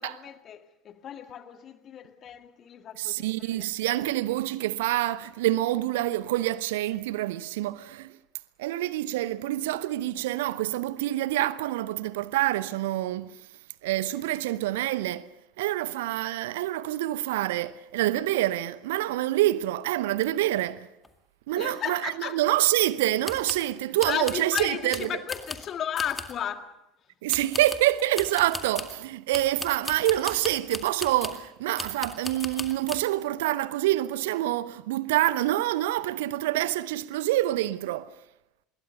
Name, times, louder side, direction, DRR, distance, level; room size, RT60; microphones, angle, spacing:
voice 1, 0.0-3.7 21.6-22.4 24.1-26.7, left 9 dB, 35° left, 2.0 m, -34 dB
voice 2, 3.0-8.1 8.6-13.4 13.8-15.3 15.6-20.9 21.5-25.1 27.2-38.1, right 15 dB, 60° right, 0.8 m, -27 dB
sound 1, 20.2-20.3 20.5-20.6 21.0-21.1 21.7-21.8 23.2-23.7 24.0-25.7 26.0-26.4 27.3-29.0 29.3-31.5 31.8-33.0, left 2 dB, 10° left, 2.1 m, -38 dB
26.0 x 22.0 x 6.8 m
figure-of-eight pair, 70°, 0 cm